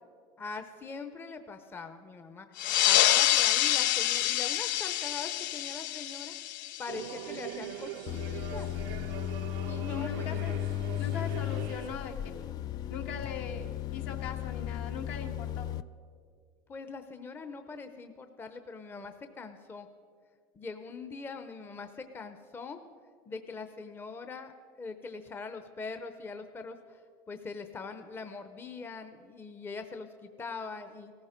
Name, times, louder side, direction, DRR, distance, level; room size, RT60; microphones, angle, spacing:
voice 1, 0.4-2.5 2.8-6.4 6.8-8.7 9.7-10.6 16.7-19.9 20.5-22.8 23.3-24.5 24.8-27.0 27.3-31.1, left 4 dB, 20° left, 8 dB, 0.8 m, -42 dB
sound 1, 2.6-7.6, left 13 dB, 90° left, 0.5 m, -27 dB
sound 2, 6.9-11.9, right 11 dB, 80° right, 0.6 m, -42 dB
sound 3, 8.1-15.8, left 13 dB, 40° left, 0.3 m, -35 dB
voice 2, 9.9-10.6 11.0-12.3 12.9-15.7, left 6 dB, 70° left, 3 dB, 1.7 m, -40 dB
17.5 x 14.5 x 5.1 m, 2.1 s
supercardioid pair, 130°, 11 cm